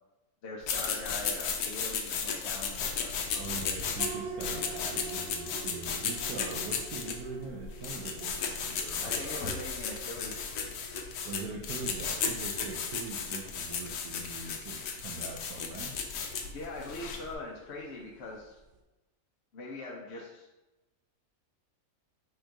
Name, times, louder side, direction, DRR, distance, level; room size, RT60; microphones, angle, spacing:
voice 1, 0.4-3.1 9.0-10.4 16.5-18.6 19.5-20.5, left 2 dB, 60° left, -2 dB, 0.7 m, -42 dB
sound 1, 0.6-17.3, left 6 dB, 75° left, 1.1 m, -35 dB
voice 2, 3.3-9.5 11.2-15.9, right 5 dB, 75° right, -1 dB, 1.0 m, -42 dB
sound 2, 4.0-18.8, right 3 dB, 55° right, 0.7 m, -48 dB
4.4 x 2.5 x 4.5 m, 1.0 s
omnidirectional pair, 1.7 m